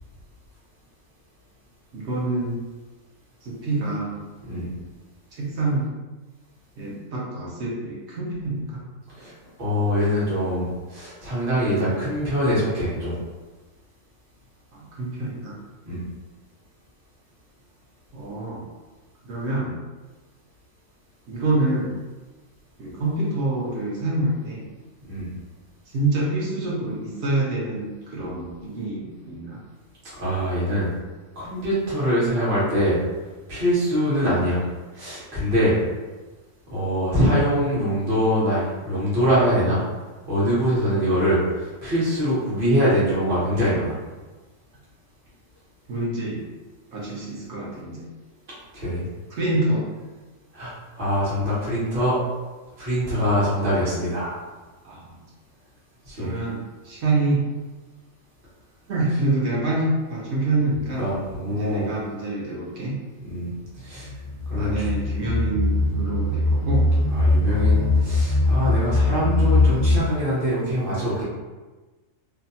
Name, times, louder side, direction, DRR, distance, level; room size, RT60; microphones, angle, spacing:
voice 1, 1.9-2.6 3.4-4.2 4.6-4.8 5.3-5.9 6.8-8.8 9.2-9.3 14.7-15.6 18.1-18.6 19.2-19.8 21.3-21.9 22.8-24.7 25.9-29.6 45.9-46.4 46.9-48.1 49.3-49.9 54.8-55.2 56.2-57.5 58.9-61.0 61.5-63.0 64.6-66.9 67.5-68.3, right 2 dB, 65° right, -5 dB, 0.9 m, -27 dB
voice 2, 9.6-13.2 15.9-16.0 25.1-25.3 30.2-30.9 31.3-33.0 33.5-34.6 34.9-35.8 36.7-39.8 40.3-44.0 48.7-49.0 50.5-52.2 52.8-54.3 56.0-56.3 61.0-61.9 63.3-63.5 63.8-64.1 64.5-64.9 67.1-71.2, equal, 45° right, -9 dB, 1.1 m, -23 dB
sound 1, 63.8-70.0, left 2 dB, 20° left, 0.5 m, -21 dB
2.8 x 2.2 x 2.6 m, 1.2 s
omnidirectional pair, 1.4 m